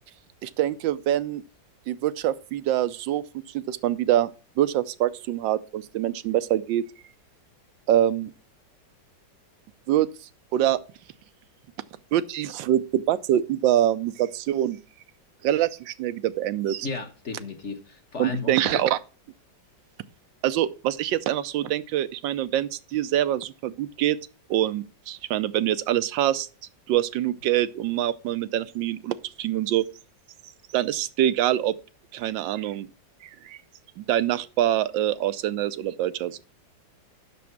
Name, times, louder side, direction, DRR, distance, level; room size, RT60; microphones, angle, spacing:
voice 1, 0.4-1.4 1.9-3.2 3.5-4.3 4.6-6.8 7.9-8.3 9.9-10.1 10.5-10.8 12.1-14.8 15.4-16.9 18.2-19.0 20.4-24.2 24.5-26.5 26.9-29.8 30.7-31.7 32.1-32.9 33.4-33.6 34.0-36.4, right 12 dB, 85° right, 1.3 m, -25 dB
voice 2, 16.8-18.8, left 4 dB, 45° left, 1.2 m, -34 dB
8.4 x 6.2 x 5.8 m
omnidirectional pair, 2.0 m